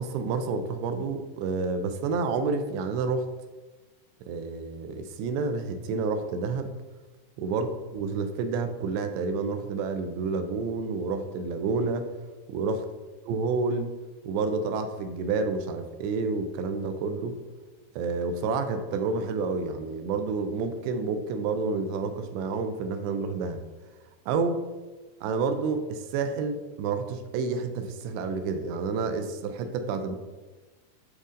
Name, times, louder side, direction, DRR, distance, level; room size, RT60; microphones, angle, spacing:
voice 1, 0.0-3.3 4.3-6.7 7.4-12.1 12.5-12.8 13.3-13.9 14.3-17.4 18.0-23.6 24.3-24.6 25.2-30.2, right 4 dB, 80° right, 8 dB, 2.7 m, -29 dB
11.5 x 4.1 x 3.8 m, 1.2 s
omnidirectional pair, 5.2 m